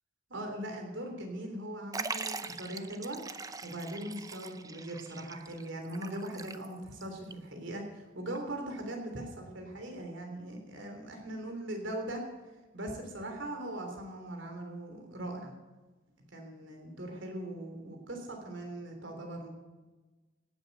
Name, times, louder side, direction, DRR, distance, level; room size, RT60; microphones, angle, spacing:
voice 1, 0.3-12.2 12.7-15.5 16.3-19.5, right 1 dB, 70° right, 3 dB, 3.4 m, -40 dB
Liquid, 1.9-7.0 7.3-7.4 8.3-8.4, right 4 dB, 20° right, 0.6 m, -41 dB
18.0 x 8.8 x 7.9 m, 1.2 s
head